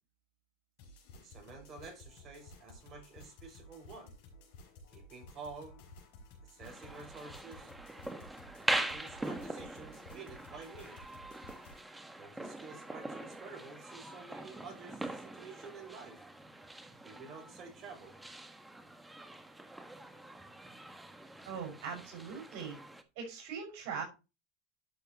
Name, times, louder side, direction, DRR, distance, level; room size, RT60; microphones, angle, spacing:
sound 1, 0.8-11.8, left 2 dB, 65° left, 5.6 m, -55 dB
voice 1, 1.2-4.1 4.9-5.8 6.5-7.7 8.6-11.0 12.1-16.2 17.0-18.1, right 4 dB, 35° right, 6.5 m, -50 dB
sound 2, 6.6-23.0, right 2 dB, 5° right, 1.3 m, -42 dB
voice 2, 21.4-22.8 23.2-24.0, right 6 dB, 60° right, 6.1 m, -41 dB
12.0 x 6.6 x 3.0 m
hypercardioid pair, 105°, 0 cm